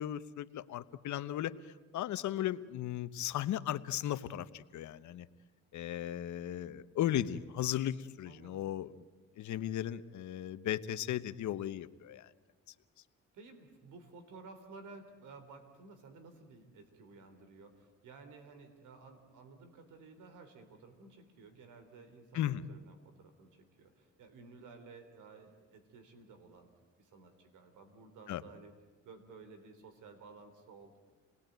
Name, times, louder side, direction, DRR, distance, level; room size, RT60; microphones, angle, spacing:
voice 1, 0.0-1.5 1.9-5.3 5.7-8.9 9.4-12.3 22.3-22.6 28.3-28.4, left 12 dB, 75° left, 13 dB, 1.0 m, -36 dB
voice 2, 8.2-8.6 13.3-26.7 27.0-28.7 29.0-31.0, right 4 dB, 80° right, 8 dB, 3.6 m, -54 dB
28.0 x 19.5 x 9.2 m, 1.3 s
cardioid pair, 90°, 30 cm